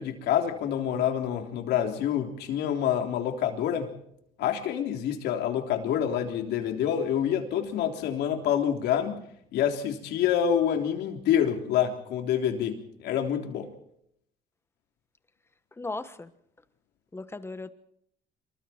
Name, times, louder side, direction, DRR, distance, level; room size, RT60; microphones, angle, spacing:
voice 1, 0.0-3.9 4.4-9.2 9.5-13.7, left 9 dB, 80° left, 4 dB, 3.5 m, -27 dB
voice 2, 15.8-16.3 17.1-17.7, left 2 dB, 15° left, 12 dB, 1.4 m, -36 dB
26.5 x 23.0 x 4.5 m, 0.72 s
cardioid pair, 110°, 17 cm